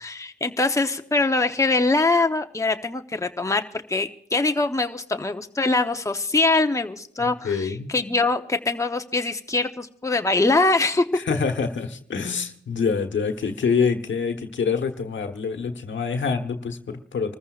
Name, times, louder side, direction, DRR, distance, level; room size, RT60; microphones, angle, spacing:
voice 1, 0.0-3.6 3.9-11.1, left 3 dB, 15° left, 6 dB, 0.9 m, -23 dB
voice 2, 7.2-7.9 11.1-17.4, left 5 dB, 70° left, 6 dB, 1.2 m, -26 dB
26.5 x 14.5 x 2.4 m, 0.64 s
cardioid pair, 45°, 20 cm